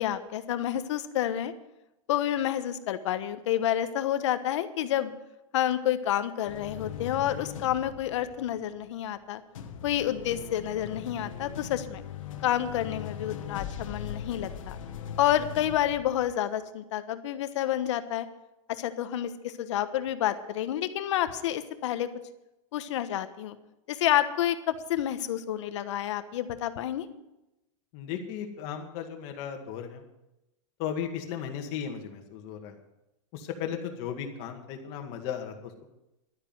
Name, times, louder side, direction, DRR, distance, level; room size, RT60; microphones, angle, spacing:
voice 1, 0.0-1.5 2.1-5.1 5.5-9.4 9.8-12.0 12.4-14.8 15.2-18.3 18.7-22.1 22.7-23.6 23.9-27.1, left 11 dB, 65° left, 11 dB, 1.2 m, -29 dB
sound 1, 6.4-9.2 9.5-16.3, left 8 dB, 80° left, 1.5 m, -40 dB
voice 2, 27.9-30.0 30.8-32.7 33.3-35.9, left 8 dB, 40° left, 3 dB, 2.1 m, -36 dB
12.0 x 9.9 x 7.8 m, 0.92 s
supercardioid pair, 160°, 17 cm